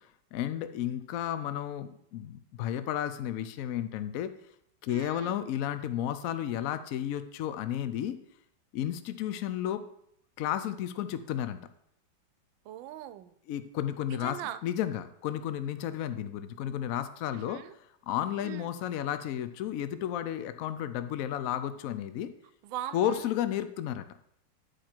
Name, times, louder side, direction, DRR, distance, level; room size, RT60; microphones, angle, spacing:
voice 1, 0.0-4.3 4.8-8.2 8.7-9.8 10.4-11.6 13.5-14.4 14.6-17.6 18.1-22.3 22.9-24.0, left 11 dB, 90° left, 11 dB, 0.7 m, -32 dB
voice 2, 4.9-5.3 12.6-13.4 14.1-14.6 17.3-17.7 18.4-18.7 22.6-23.3, right 12 dB, 85° right, 13 dB, 1.3 m, -41 dB
10.5 x 4.9 x 4.4 m, 0.73 s
omnidirectional pair, 2.0 m